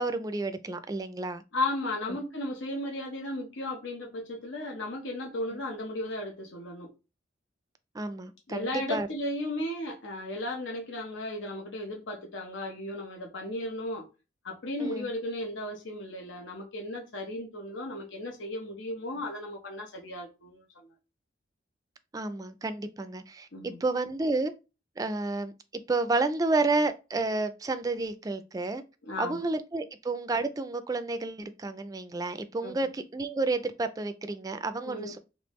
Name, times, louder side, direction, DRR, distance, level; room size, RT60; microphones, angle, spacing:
voice 1, 0.0-1.4 7.9-9.1 14.8-15.1 22.1-24.5 25.0-25.5 25.9-28.8 29.2-35.2, right 3 dB, 20° right, 0.3 m, -30 dB
voice 2, 1.5-6.9 8.5-14.0 14.4-20.9 23.5-23.8 29.1-29.4 32.6-32.9 34.8-35.1, left 1 dB, 85° left, 0.9 m, -35 dB
3.4 x 2.7 x 3.1 m
head